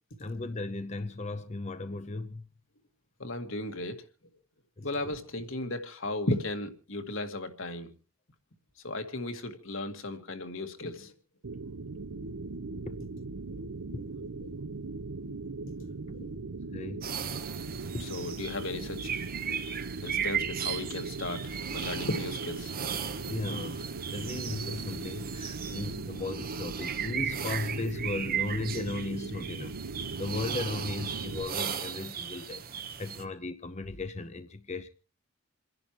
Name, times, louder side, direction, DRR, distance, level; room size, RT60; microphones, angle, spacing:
voice 1, 0.2-2.4 4.8-4.9 13.9-14.0 16.7-17.2 17.9-18.0 23.3-29.8 30.2-32.6 33.0-34.9, left 2 dB, 30° left, 0.7 m, -36 dB
voice 2, 3.2-4.0 4.8-7.9 8.8-11.1 13.5-14.1 14.4-14.6 16.1-16.4 16.9-17.1 18.0-19.2 19.4-19.6 20.0-22.7 32.5-32.6, left 2 dB, 60° left, 1.9 m, -36 dB
sound 1, 11.4-31.4, right 3 dB, 75° right, 0.8 m, -39 dB
sound 2, 17.0-33.2, right 8 dB, 40° right, 1.1 m, -37 dB
28.0 x 11.0 x 3.0 m
head